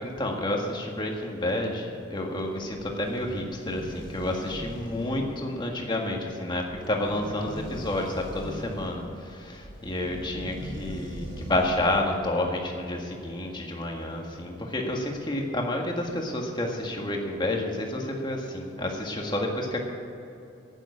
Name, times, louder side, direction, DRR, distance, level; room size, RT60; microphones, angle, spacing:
voice 1, 0.0-19.8, left 1 dB, 25° left, 1 dB, 1.8 m, -30 dB
sound 1, 2.7-12.1, equal, 65° right, 3.4 m, -40 dB
11.5 x 9.1 x 8.6 m, 2.8 s
head